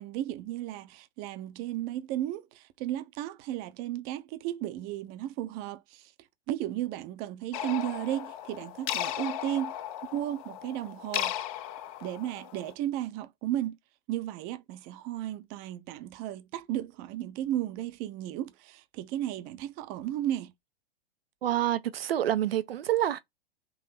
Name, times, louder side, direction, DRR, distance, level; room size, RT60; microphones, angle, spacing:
voice 1, 0.0-6.1 6.5-9.8 10.1-11.3 12.0-13.8 14.1-20.5, right 13 dB, 30° right, 0.6 m, -34 dB
sound 1, 7.5-12.7, left 12 dB, 35° left, 0.5 m, -36 dB
voice 2, 21.4-23.2, right 12 dB, 70° right, 0.6 m, -27 dB
3.8 x 2.9 x 4.3 m
hypercardioid pair, 110°, 31 cm